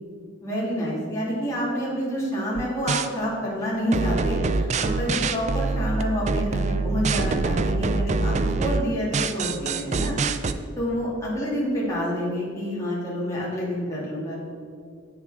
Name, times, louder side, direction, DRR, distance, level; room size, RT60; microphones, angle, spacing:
voice 1, 0.4-10.1 10.8-14.5, equal, 15° left, -7 dB, 2.3 m, -28 dB
sound 1, 2.6-3.1 3.9-10.5, right 3 dB, 35° right, 0.3 m, -25 dB
8.5 x 6.9 x 4.8 m, 2.3 s
head